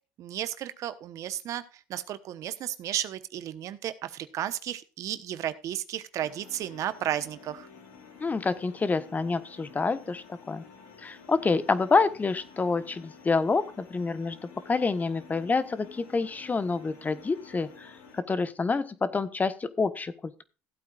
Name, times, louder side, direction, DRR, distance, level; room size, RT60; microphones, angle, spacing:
voice 1, 0.2-1.6 1.9-7.7, right 11 dB, 65° right, 13 dB, 1.1 m, -33 dB
sound 1, 6.2-18.2, left 5 dB, 85° left, 3.0 m, -51 dB
voice 2, 8.2-10.6 11.0-14.4 14.7-20.4, left 4 dB, 25° left, 13 dB, 1.2 m, -27 dB
15.5 x 8.5 x 2.5 m, 0.33 s
supercardioid pair, 80°, 6 cm